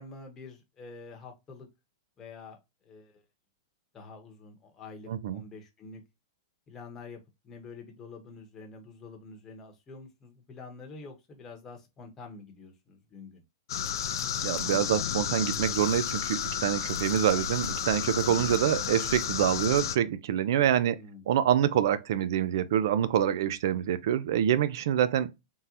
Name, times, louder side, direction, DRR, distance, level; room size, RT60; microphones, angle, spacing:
voice 1, 0.0-1.7 2.2-2.6 2.8-3.2 3.9-6.0 6.7-13.4 20.8-21.3, left 4 dB, 20° left, 0.8 m, -47 dB
voice 2, 5.1-5.4 14.4-21.0 21.3-25.3, right 10 dB, 65° right, 0.4 m, -26 dB
sound 1, 13.7-20.0, left 9 dB, 70° left, 0.4 m, -32 dB
3.7 x 2.1 x 2.8 m
hypercardioid pair, 150°, 2 cm